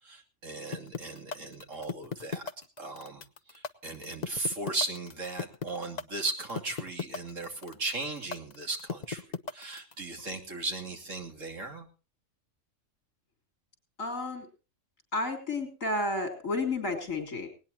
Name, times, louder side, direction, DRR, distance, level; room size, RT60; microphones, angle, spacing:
voice 1, 0.0-2.4 2.8-9.2 9.5-11.9, right 2 dB, 70° right, 3 dB, 3.2 m, -37 dB
sound 1, 0.7-9.9, left 5 dB, 40° left, 0.8 m, -36 dB
voice 2, 14.0-14.5 15.1-17.5, left 2 dB, 70° left, 5 dB, 3.9 m, -31 dB
19.0 x 18.5 x 2.8 m, 0.34 s
omnidirectional pair, 1.4 m